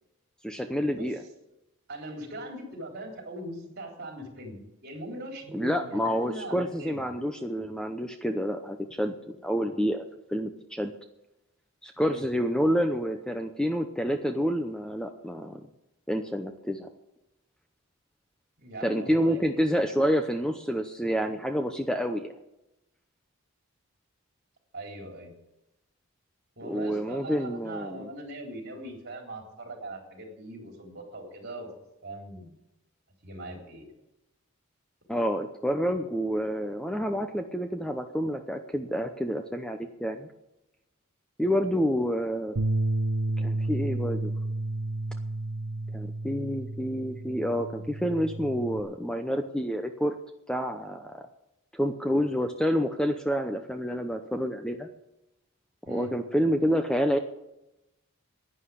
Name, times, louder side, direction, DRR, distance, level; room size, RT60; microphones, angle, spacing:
voice 1, 0.4-1.2 5.5-10.0 10.3-10.9 11.8-15.6 16.1-16.9 18.8-22.3 26.6-28.1 35.1-40.3 41.4-42.6 43.4-44.3 45.9-50.1 50.5-51.3 51.7-54.9 55.9-57.2, equal, 5° left, 6 dB, 0.7 m, -28 dB
voice 2, 1.9-7.0 12.0-12.2 18.6-19.7 24.7-25.4 26.6-31.7 32.0-32.6 33.2-33.9 55.9-56.1, right 1 dB, 50° right, 2 dB, 3.8 m, -40 dB
Bass guitar, 42.6-48.8, right 2 dB, 85° right, 0.9 m, -31 dB
11.5 x 9.9 x 8.4 m, 0.90 s
head